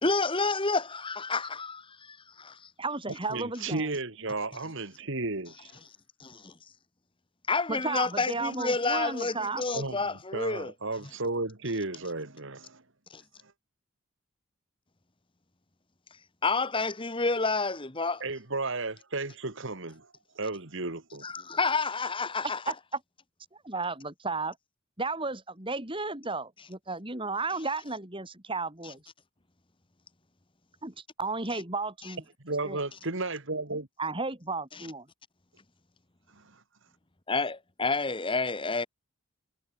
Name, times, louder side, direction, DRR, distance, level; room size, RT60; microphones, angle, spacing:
voice 1, 0.0-2.7 6.2-6.5 7.5-10.7 13.1-13.2 16.4-18.2 21.2-22.6 34.7-34.9 37.3-38.9, left 3 dB, 25° left, 1.6 m, -29 dB
voice 2, 2.8-3.9 7.7-9.6 22.7-22.8 23.6-24.5 25.0-29.0 30.8-32.2 32.6-32.8 34.0-35.1, right 3 dB, 25° right, 3.5 m, -33 dB
voice 3, 3.3-5.8 9.7-12.8 18.2-20.1 20.4-21.2 32.4-33.9 36.4-36.6, right 2 dB, 60° right, 2.2 m, -34 dB
head